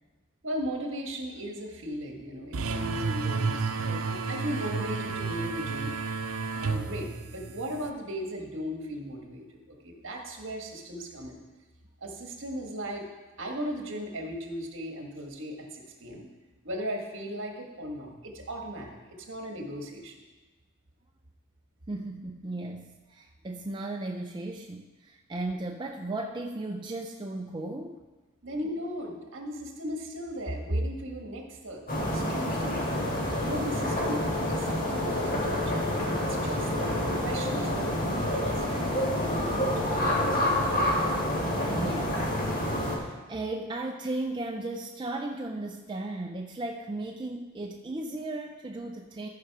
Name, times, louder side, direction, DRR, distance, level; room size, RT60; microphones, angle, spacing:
voice 1, 0.4-5.9 6.6-11.4 12.0-13.1 13.4-16.3 16.6-19.0 19.3-20.1 28.4-35.9 36.2-38.8 39.2-40.5, equal, 60° right, 1 dB, 1.6 m, -37 dB
sound 1, 2.5-7.9, right 4 dB, 85° right, 0.7 m, -31 dB
voice 2, 21.9-28.0 41.6-49.3, right 2 dB, 20° right, 2 dB, 0.4 m, -36 dB
sound 2, 31.9-43.0, left 1 dB, 40° left, 1.5 m, -28 dB
14.0 x 5.5 x 4.8 m, 1.2 s
head